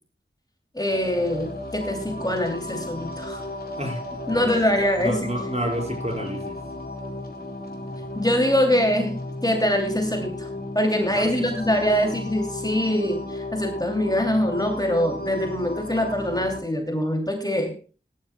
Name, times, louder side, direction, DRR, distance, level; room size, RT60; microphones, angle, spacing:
voice 1, 0.7-3.4 4.3-5.3 8.2-9.1 9.4-10.5 10.7-17.7, equal, 20° left, 4 dB, 2.6 m, -23 dB
sound 1, 0.9-16.6, left 1 dB, 45° left, 3.7 m, -34 dB
voice 2, 4.3-4.6 5.0-6.6 11.1-12.0, right 1 dB, 30° right, 2 dB, 4.8 m, -31 dB
18.5 x 11.5 x 2.2 m, 0.34 s
wide cardioid pair, 45°, 21 cm